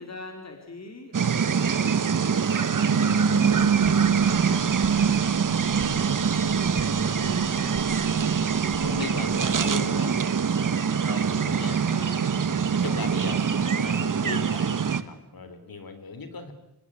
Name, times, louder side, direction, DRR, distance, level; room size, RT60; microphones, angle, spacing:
voice 1, 0.0-5.4 5.9-6.3 6.7-9.4 10.3-10.4 10.8-12.2, left 2 dB, 45° left, 4 dB, 4.2 m, -43 dB
sound 1, 1.1-15.0, right 6 dB, 55° right, 1.2 m, -24 dB
sound 2, 3.4-9.6, left 1 dB, 5° left, 5.8 m, -46 dB
voice 2, 8.8-10.2 11.0-11.8 12.7-16.5, left 4 dB, 70° left, 10 dB, 3.6 m, -37 dB
25.5 x 19.0 x 9.9 m, 0.92 s
wide cardioid pair, 85°, 37 cm